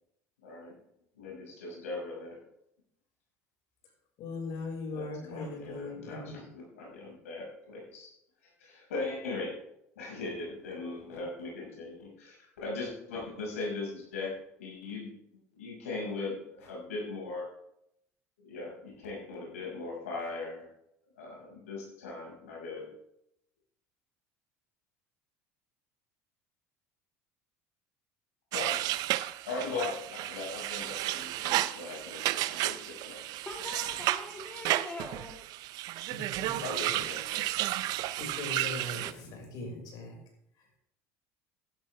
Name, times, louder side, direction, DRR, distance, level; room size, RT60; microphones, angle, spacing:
voice 1, 0.4-0.8 1.2-2.4 4.9-8.1 8.4-9.5 10.0-14.3 14.6-17.5 18.4-20.7 21.1-22.9 28.5-28.8 29.5-33.3 36.6-37.5, left 3 dB, 85° left, -3 dB, 6.0 m, -39 dB
voice 2, 4.2-6.9 36.1-36.6 37.7-40.2, left 2 dB, 60° left, 1 dB, 5.8 m, -40 dB
sound 1, 28.5-39.1, right 16 dB, 60° right, 0.6 m, -33 dB
voice 3, 33.5-35.5, left 2 dB, 15° left, 1 dB, 2.2 m, -42 dB
14.5 x 12.0 x 3.5 m, 0.77 s
hypercardioid pair, 75°, 8 cm